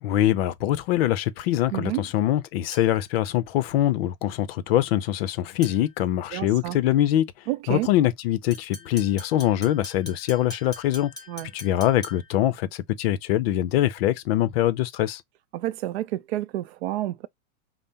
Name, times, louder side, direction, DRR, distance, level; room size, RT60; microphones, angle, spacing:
voice 1, 0.0-7.3 7.7-11.1 11.5-15.2, left 13 dB, 45° left, 0.6 m, -23 dB
voice 2, 1.7-2.0 6.3-6.8 7.5-7.9 11.3-11.5 15.5-17.3, right 15 dB, 50° right, 0.5 m, -29 dB
sound 1, 2.7-3.2 5.6-6.0 8.5-12.5, left 2 dB, 10° left, 1.5 m, -43 dB
5.2 x 2.0 x 2.8 m
supercardioid pair, 145°, 42 cm